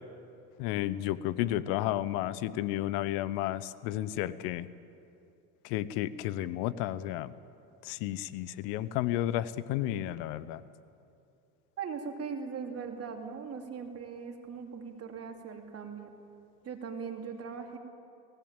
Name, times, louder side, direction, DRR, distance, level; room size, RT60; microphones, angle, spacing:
voice 1, 0.6-4.7 5.6-7.3 7.8-10.6, left 13 dB, 85° left, 17 dB, 0.9 m, -32 dB
voice 2, 11.8-16.1 16.6-17.8, right 6 dB, 45° right, 4 dB, 2.7 m, -40 dB
18.0 x 17.0 x 8.9 m, 2.6 s
supercardioid pair, 105°, 35 cm